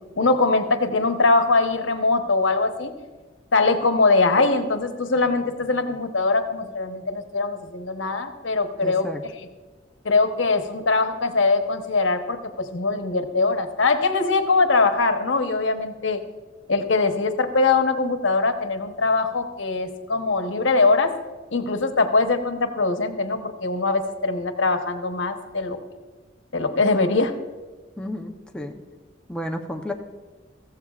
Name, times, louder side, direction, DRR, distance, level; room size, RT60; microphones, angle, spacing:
voice 1, 0.2-2.9 3.5-9.1 10.0-16.2 16.7-21.1 21.5-25.8 26.5-27.3, left 3 dB, 90° left, 7 dB, 1.0 m, -22 dB
voice 2, 8.8-9.2 28.0-28.8 29.3-29.9, left 1 dB, 5° left, 1 dB, 0.7 m, -32 dB
14.5 x 14.5 x 2.4 m, 1.3 s
head